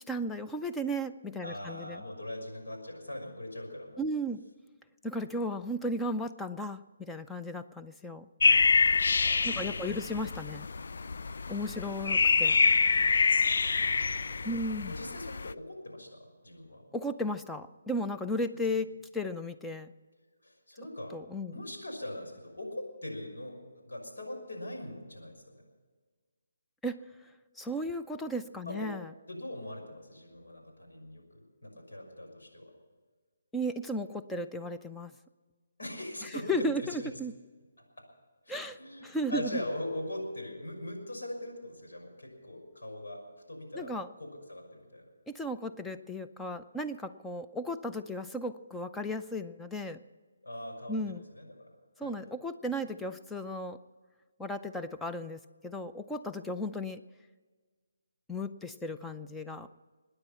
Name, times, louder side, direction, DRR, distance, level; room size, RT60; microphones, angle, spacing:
voice 1, 0.1-2.0 4.0-4.4 5.0-8.3 9.4-10.7 11.5-12.6 14.4-15.0 16.9-19.9 21.1-21.6 26.8-27.0 27.6-29.1 33.5-35.1 36.2-37.3 38.5-39.6 43.7-44.1 45.3-50.0 50.9-51.2 52.0-53.8 54.4-57.0 58.3-59.7, equal, 5° left, 7 dB, 0.6 m, -35 dB
voice 2, 1.4-4.0 9.2-10.0 13.6-14.6 14.9-16.8 20.4-21.2 21.5-25.6 28.6-28.9 29.3-32.7 35.8-37.1 37.8-38.1 38.4-43.2 43.5-45.1 50.4-51.7 52.0-52.1, left 1 dB, 80° left, 1 dB, 6.0 m, -41 dB
sound 1, 8.4-15.5, left 4 dB, 65° left, 0.4 m, -26 dB
24.0 x 9.9 x 5.8 m, 1.5 s
hypercardioid pair, 155°, 0 cm